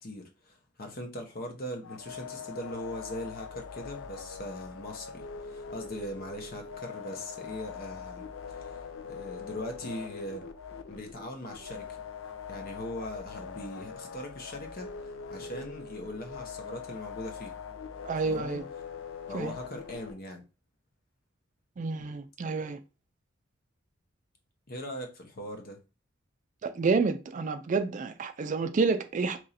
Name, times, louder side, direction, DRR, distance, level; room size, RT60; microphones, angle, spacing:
voice 1, 0.0-8.7 9.1-10.4 10.9-12.0 12.5-17.5 18.2-18.6 19.3-20.4 22.0-22.1 24.7-25.8, left 1 dB, 50° left, 0.8 m, -40 dB
sound 1, 1.8-20.1, left 6 dB, 75° left, 0.5 m, -42 dB
voice 2, 18.0-18.7 19.3-19.5 21.8-22.8 26.6-29.4, right 4 dB, 40° right, 0.4 m, -29 dB
3.0 x 2.6 x 4.1 m
head